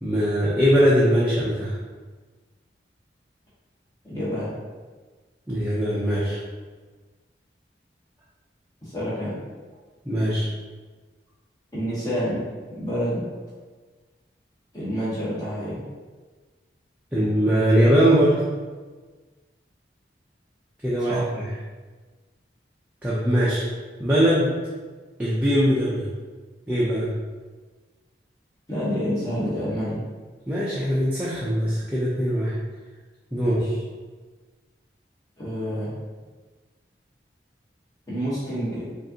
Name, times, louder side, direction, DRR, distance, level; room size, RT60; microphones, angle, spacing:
voice 1, 0.0-1.8 5.5-6.4 10.1-10.5 17.1-18.4 20.8-21.3 23.0-23.6 24.0-24.5 25.2-26.1 26.7-27.1 30.5-32.5 33.3-33.6, equal, 10° right, -8 dB, 0.5 m, -21 dB
voice 2, 4.1-4.5 8.8-9.4 11.7-12.4 12.7-13.3 14.7-15.8 21.0-21.2 28.7-30.0 33.4-33.7 35.4-35.9 38.1-38.8, equal, 20° left, -10 dB, 1.1 m, -28 dB
5.0 x 2.6 x 2.8 m, 1.4 s
head